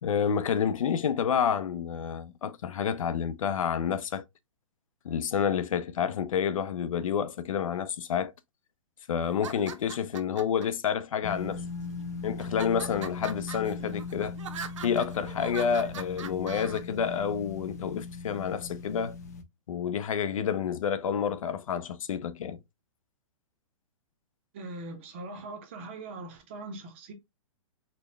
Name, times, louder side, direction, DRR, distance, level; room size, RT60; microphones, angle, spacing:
voice 1, 0.0-4.2 5.0-8.3 9.1-11.6 12.2-14.3 14.8-19.2 19.7-22.6, left 7 dB, 80° left, 0.6 m, -29 dB
sound 1, 9.3-10.6 11.4-11.9 12.4-16.8, right 7 dB, 65° right, 0.7 m, -42 dB
sound 2, 11.2-19.4, left 4 dB, 30° left, 0.4 m, -39 dB
voice 2, 24.5-27.1, right 2 dB, 20° right, 0.6 m, -41 dB
4.1 x 2.1 x 3.2 m
hypercardioid pair, 175°, 17 cm